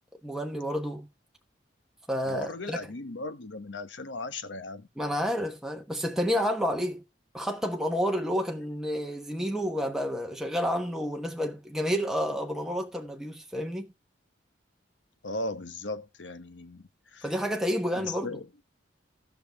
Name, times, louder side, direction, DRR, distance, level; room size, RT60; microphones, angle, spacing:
voice 1, 0.2-1.1 2.1-2.8 5.0-7.0 7.3-13.9 17.2-18.3, equal, 5° right, 1.0 m, -30 dB
voice 2, 2.2-4.9 15.2-17.3 17.9-18.4, left 2 dB, 75° left, 1.0 m, -37 dB
16.0 x 6.0 x 3.4 m
head